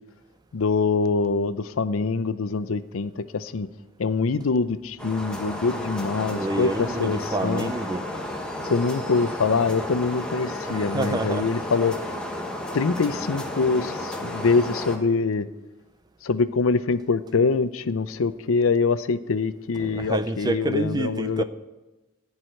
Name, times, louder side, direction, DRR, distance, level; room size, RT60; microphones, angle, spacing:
voice 1, 0.5-3.7 4.0-7.7 8.7-12.0 12.7-15.5 16.2-21.4, left 4 dB, 80° left, 0.5 m, -24 dB
sound 1, 5.0-15.0, left 1 dB, 5° left, 1.2 m, -32 dB
voice 2, 6.3-8.1 10.7-11.5 19.8-21.4, right 2 dB, 20° right, 0.5 m, -28 dB
14.0 x 4.8 x 9.0 m
head